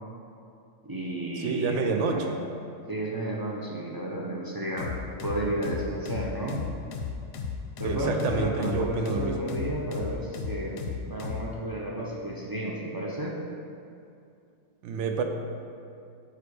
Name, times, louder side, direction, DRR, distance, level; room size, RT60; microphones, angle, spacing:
voice 1, 0.8-2.4 2.9-4.9 5.2-6.6 7.8-10.8 11.0-13.4, right 1 dB, 30° right, -4 dB, 0.4 m, -32 dB
voice 2, 1.4-2.4 7.8-9.4 14.8-15.2, right 5 dB, 70° right, 5 dB, 0.9 m, -28 dB
sound 1, 4.8-11.5, left 6 dB, 65° left, 0.8 m, -34 dB
5.1 x 4.8 x 4.8 m, 2.4 s
omnidirectional pair, 1.3 m